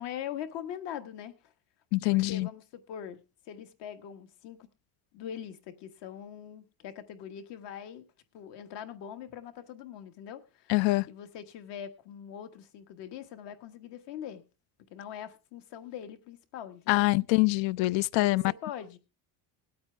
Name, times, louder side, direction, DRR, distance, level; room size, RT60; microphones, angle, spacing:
voice 1, 0.0-1.5 2.1-3.2 3.5-4.6 5.1-8.0 8.3-10.7 11.1-14.4 14.9-17.1 18.2-19.0, left 9 dB, 65° left, 1.7 m, -42 dB
voice 2, 1.9-2.5 10.7-11.1 16.9-18.4, left 21 dB, 80° left, 0.6 m, -25 dB
21.0 x 8.7 x 3.3 m
cardioid pair, 165°, 44 cm